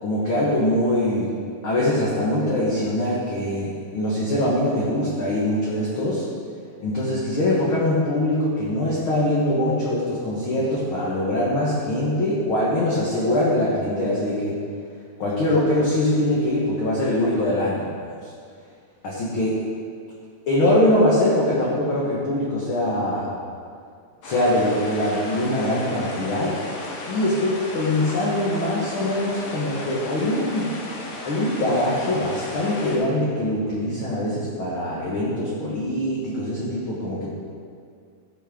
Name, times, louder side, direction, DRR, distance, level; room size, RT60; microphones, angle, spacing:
voice 1, 0.0-1.3 1.6-6.2 6.8-14.6 15.2-17.9 18.2-18.3 19.0-19.6 20.5-23.3 24.2-26.6 27.1-30.7 31.2-37.3, left 1 dB, 65° left, -6 dB, 1.3 m, -23 dB
sound 1, 24.2-33.0, left 2 dB, 80° left, 3.1 m, -35 dB
14.5 x 6.1 x 3.7 m, 2.2 s
omnidirectional pair, 4.2 m